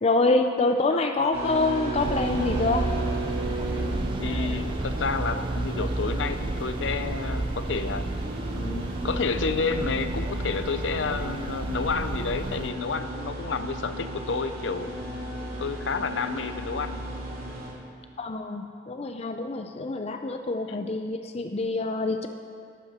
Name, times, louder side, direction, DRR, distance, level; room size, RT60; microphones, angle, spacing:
voice 1, 0.0-2.9 18.2-22.3, left 3 dB, 35° left, 6 dB, 0.5 m, -26 dB
sound 1, 1.3-17.7, right 1 dB, 55° right, 2.5 m, -35 dB
sound 2, 1.9-12.7, right 2 dB, 30° right, 0.4 m, -32 dB
voice 2, 4.2-8.1 8.6-15.0 15.6-17.1 20.7-20.9, left 4 dB, 90° left, 10 dB, 0.7 m, -30 dB
13.0 x 11.5 x 4.3 m, 2.2 s
head